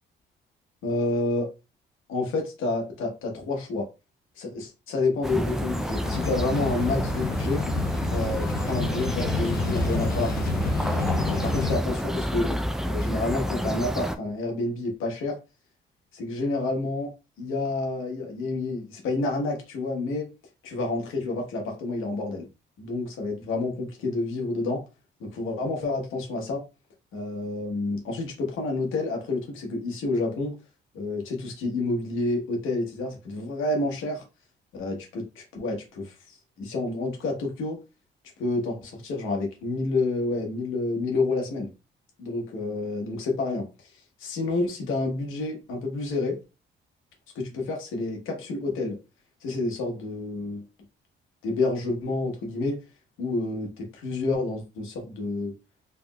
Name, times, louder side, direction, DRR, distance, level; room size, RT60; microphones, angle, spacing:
voice 1, 0.8-1.5 2.1-3.9 4.4-7.6 8.1-10.5 10.9-15.4 16.1-17.1 17.4-20.3 20.6-22.5 22.8-24.8 25.2-26.6 27.1-30.6 30.9-34.2 34.7-37.8 38.4-41.7 42.2-43.9 44.2-46.4 47.3-49.0 49.4-50.6 51.4-52.8 53.2-55.5, left 2 dB, 85° left, 1.1 m, -29 dB
sound 1, 5.2-14.2, equal, ahead, 0.4 m, -29 dB
sound 2, 5.4-11.8, left 3 dB, 50° left, 0.8 m, -29 dB
3.4 x 2.8 x 2.3 m
cardioid pair, 90°, 20 cm